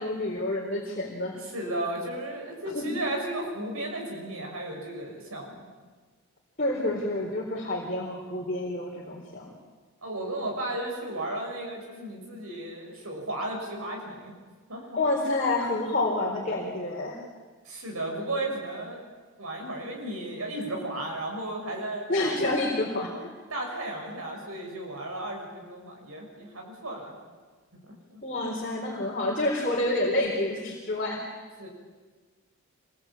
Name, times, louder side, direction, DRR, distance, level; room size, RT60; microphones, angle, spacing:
voice 1, 0.0-1.4 2.7-3.0 6.6-9.5 14.9-17.2 22.1-23.3 28.2-31.2, left 2 dB, 40° left, -3 dB, 4.1 m, -28 dB
voice 2, 1.3-5.7 10.0-14.3 14.7-15.0 17.6-19.0 19.4-22.7 23.5-27.1 28.1-28.2 31.6-31.7, right 1 dB, 80° right, 0 dB, 6.5 m, -34 dB
26.5 x 22.0 x 8.8 m, 1.4 s
head